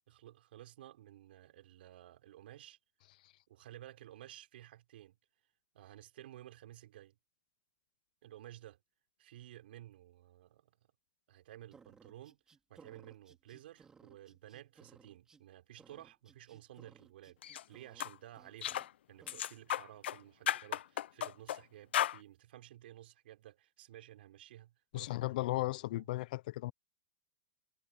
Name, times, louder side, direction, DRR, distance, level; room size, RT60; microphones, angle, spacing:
voice 1, 0.1-2.8 3.5-5.1 5.7-7.2 8.2-8.8 9.2-10.7 11.3-12.4 12.7-18.8 19.1-25.3 25.9-26.1, right 13 dB, 65° right, 5.3 m, -54 dB
sound 1, 11.7-15.4 15.8-18.1 18.3-18.9 19.2-19.4, right 5 dB, 10° right, 2.5 m, -61 dB
sound 2, 17.4-17.6 18.0-18.1 18.6-18.9 19.3-20.2 20.5-21.6 21.9-22.2, left 11 dB, 85° left, 0.7 m, -34 dB
voice 2, 24.9-26.7, left 18 dB, 50° left, 0.4 m, -35 dB
supercardioid pair, 170°, 6 cm